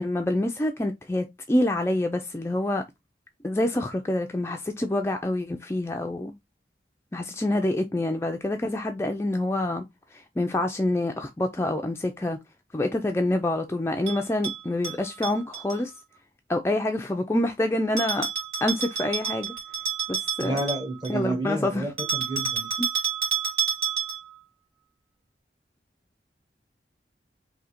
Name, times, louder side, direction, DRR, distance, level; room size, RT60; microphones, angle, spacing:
voice 1, 0.0-2.8 3.4-6.3 7.1-9.8 10.1-12.4 12.7-15.9 16.5-18.3 18.6-19.5 20.1-20.6 21.1-21.8 22.8-22.9, left 1 dB, 15° left, 0.4 m, -26 dB
Bell, 14.1-15.8 18.0-21.2 22.0-24.4, right 6 dB, 60° right, 2.5 m, -30 dB
voice 2, 20.4-22.7, right 1 dB, 25° right, 1.4 m, -30 dB
3.8 x 2.8 x 4.2 m
head